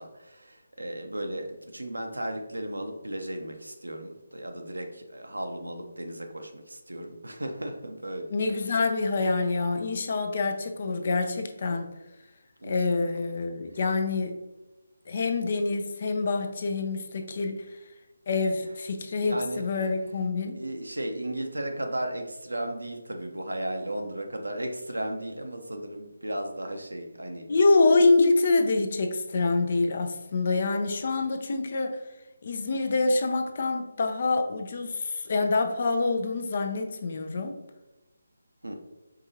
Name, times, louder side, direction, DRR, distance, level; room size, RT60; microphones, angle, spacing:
voice 1, 0.0-8.7 12.6-13.2 19.1-19.6 20.5-27.5 38.6-38.8, right 1 dB, 75° right, 4 dB, 0.7 m, -35 dB
voice 2, 8.3-11.9 12.7-14.4 15.1-17.6 18.3-20.6 27.5-32.0 32.4-37.6, left 3 dB, 45° left, 6 dB, 0.5 m, -26 dB
4.8 x 3.6 x 2.8 m, 1.0 s
figure-of-eight pair, 150°, 0 cm